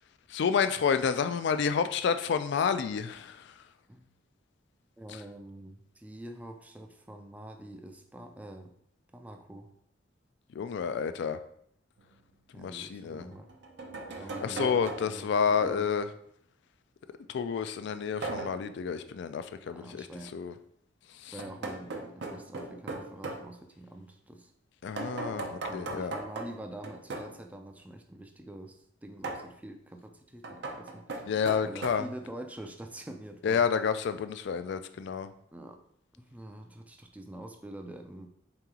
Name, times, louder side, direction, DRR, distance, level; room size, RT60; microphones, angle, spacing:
voice 1, 0.3-3.6 5.1-5.2 10.5-11.4 12.6-13.3 14.4-16.1 17.3-20.1 20.3-20.5 21.1-21.3 24.8-26.2 31.3-32.0 33.4-35.3, left 6 dB, 65° left, 11 dB, 0.3 m, -29 dB
voice 2, 5.0-8.7 9.1-9.7 12.5-13.5 14.1-14.8 15.1-15.9 19.7-20.4 21.2-24.5 25.3-31.0 31.6-33.6 35.5-35.8 36.1-38.3, right 1 dB, 10° right, 4 dB, 0.4 m, -45 dB
sound 1, 12.0-12.1 13.3-15.3 18.2-18.7 21.4-23.5 25.0-27.4 29.2-29.5 30.4-31.9, right 3 dB, 60° right, 0.6 m, -38 dB
3.9 x 2.9 x 3.6 m, 0.69 s
head